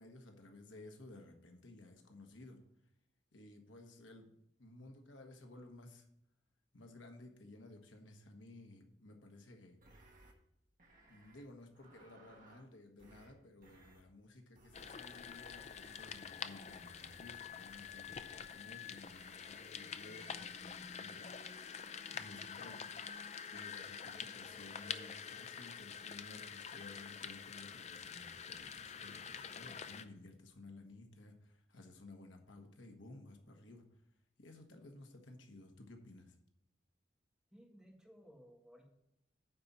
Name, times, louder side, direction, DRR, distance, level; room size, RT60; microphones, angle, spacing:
voice 1, 0.0-2.6 3.3-6.1 6.7-9.8 11.1-21.3 22.1-22.9 23.5-33.8 34.4-36.4, left 2 dB, 80° left, 4 dB, 1.3 m, -56 dB
sound 1, 9.8-10.3 10.8-11.4 11.7-12.7 13.0-13.3 13.6-14.0 14.6-16.3 16.7-17.3 17.7-18.6 19.0-19.7 20.0-20.3 20.6-20.9, right 1 dB, 45° right, 1.5 m, -63 dB
sound 2, 14.7-30.1, left 7 dB, 35° left, 0.4 m, -47 dB
voice 2, 37.5-38.9, equal, ahead, -2 dB, 1.6 m, -59 dB
9.6 x 4.1 x 7.3 m, 0.77 s
head